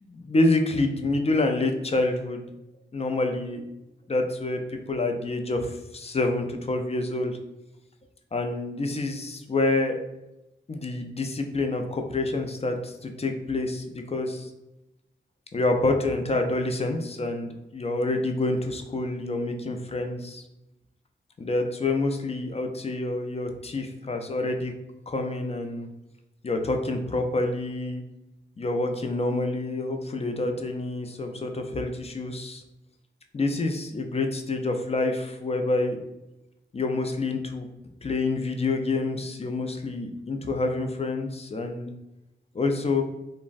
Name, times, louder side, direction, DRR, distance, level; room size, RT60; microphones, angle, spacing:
voice 1, 0.0-2.5 2.9-3.6 4.1-7.4 8.3-10.0 10.7-14.5 15.5-20.4 21.4-24.7 25.1-25.9 26.4-28.0 28.6-32.6 33.3-36.0 36.7-37.7 38.0-41.9 42.5-43.0, left 2 dB, 35° left, 4 dB, 0.4 m, -27 dB
3.2 x 2.0 x 2.5 m, 0.95 s
cardioid pair, 50°, 19 cm